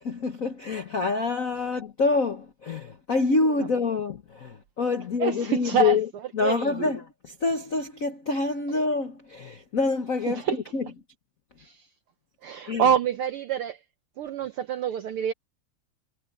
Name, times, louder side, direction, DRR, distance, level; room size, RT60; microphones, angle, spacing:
voice 1, 0.0-10.9 12.7-12.9, left 4 dB, 70° left, 0.7 m, -26 dB
voice 2, 5.2-6.0 6.4-6.9 10.3-10.6 11.6-11.8 12.4-13.8 14.2-15.3, right 8 dB, 75° right, 1.3 m, -26 dB
omnidirectional pair, 3.3 m